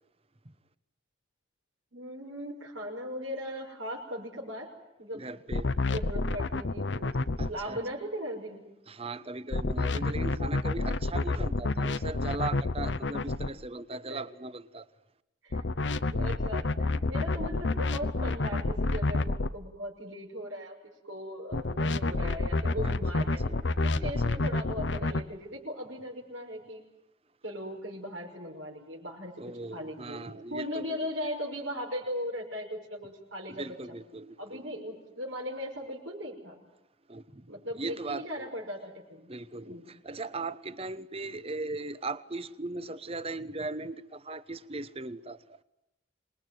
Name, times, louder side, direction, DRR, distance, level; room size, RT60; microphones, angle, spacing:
voice 1, 1.9-4.7 5.0-5.2 5.9-7.1 7.5-8.7 14.1-14.2 15.4-15.6 16.1-20.7 21.0-23.4 23.8-26.8 27.4-29.3 29.7-33.8 34.4-36.6 37.5-39.3 39.6-39.9, equal, 80° right, -2 dB, 5.7 m, -38 dB
voice 2, 5.1-5.7 7.4-7.8 8.9-14.8 22.8-23.6 29.4-31.0 33.5-34.6 37.1-37.5 37.8-38.5 39.3-45.4, right 3 dB, 30° right, 14 dB, 1.0 m, -38 dB
sound 1, 5.5-7.5 9.5-13.5 15.5-19.5 21.5-25.2, left 2 dB, 65° left, 0.9 m, -29 dB
26.5 x 21.0 x 9.3 m, 0.91 s
head